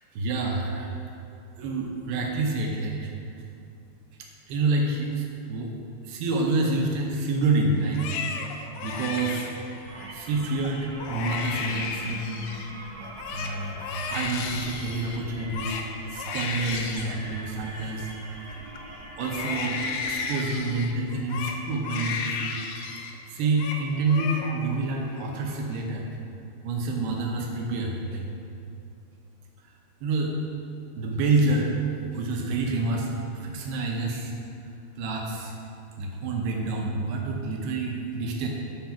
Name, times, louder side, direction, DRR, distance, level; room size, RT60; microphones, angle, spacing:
voice 1, 0.1-0.9 1.6-3.1 4.2-5.7 6.0-8.2 8.8-9.5 10.1-12.5 13.3-15.8 16.1-18.1 19.2-19.8 20.1-22.6 23.3-26.1 26.6-28.2 30.0-30.3 31.0-31.8 32.1-34.3 35.0-35.5 36.0-38.5, right 3 dB, 75° right, 0 dB, 2.5 m, -28 dB
Crying sobbing, 7.8-10.1 10.6-10.7 11.0-12.7 13.0-18.8 19.2-23.2 23.4-23.8 24.1-24.8 25.1-25.8, left 5 dB, 80° left, 2.6 m, -34 dB
sound 1, 9.8-20.8, right 1 dB, 50° right, 1.3 m, -43 dB
10.5 x 4.6 x 5.8 m, 2.5 s
omnidirectional pair, 5.3 m